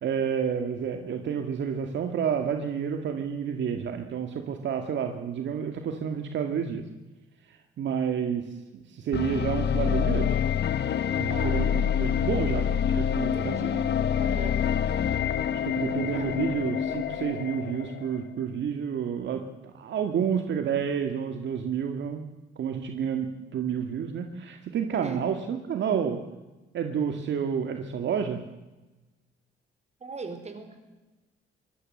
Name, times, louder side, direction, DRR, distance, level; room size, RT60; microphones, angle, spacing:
voice 1, 0.0-6.8 7.5-10.4 11.2-13.6 15.5-19.5 19.7-22.2 22.6-26.2 26.7-28.4, right 7 dB, 65° right, 5 dB, 2.0 m, -30 dB
sound 1, 9.1-18.2, left 8 dB, 60° left, 1.3 m, -27 dB
voice 2, 11.3-11.6 13.2-13.9 14.2-14.6 16.1-16.5 24.9-25.2 30.0-30.8, right 3 dB, 35° right, 7 dB, 4.8 m, -39 dB
23.5 x 17.5 x 7.8 m, 1.1 s
cardioid pair, 90°, 20 cm